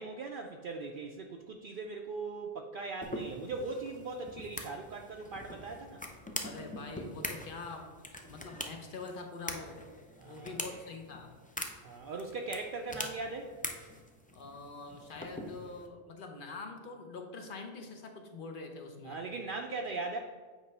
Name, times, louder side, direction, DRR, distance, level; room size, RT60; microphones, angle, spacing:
voice 1, 0.0-6.0 10.2-10.8 11.8-13.5 19.0-20.2, right 3 dB, 60° right, 2 dB, 0.6 m, -39 dB
sound 1, 3.0-15.9, left 1 dB, 15° left, 0.3 m, -43 dB
voice 2, 6.4-9.8 10.2-11.3 14.3-19.2, left 3 dB, 55° left, 4 dB, 1.0 m, -45 dB
8.0 x 3.2 x 5.4 m, 1.5 s
omnidirectional pair, 1.1 m